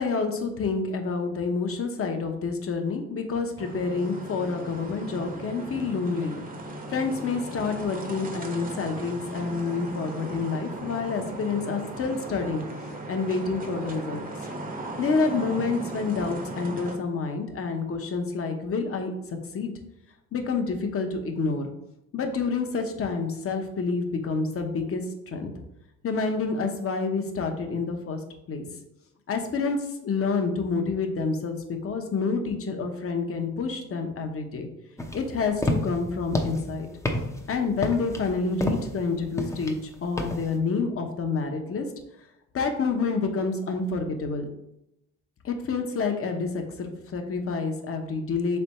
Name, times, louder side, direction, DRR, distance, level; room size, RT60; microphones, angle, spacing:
voice 1, 0.0-6.3 6.9-12.7 13.1-14.2 15.0-19.1 19.5-19.7 20.3-21.7 22.1-25.5 26.0-28.2 28.5-28.7 29.3-34.7 35.1-36.9 37.5-41.8 42.5-44.5 45.4-48.6, left 4 dB, 40° left, 5 dB, 0.8 m, -28 dB
sound 1, 3.6-17.0, right 1 dB, 25° right, 0.8 m, -37 dB
sound 2, 35.0-40.6, left 1 dB, 10° left, 0.6 m, -31 dB
3.5 x 3.4 x 4.1 m, 0.85 s
supercardioid pair, 75°, 36 cm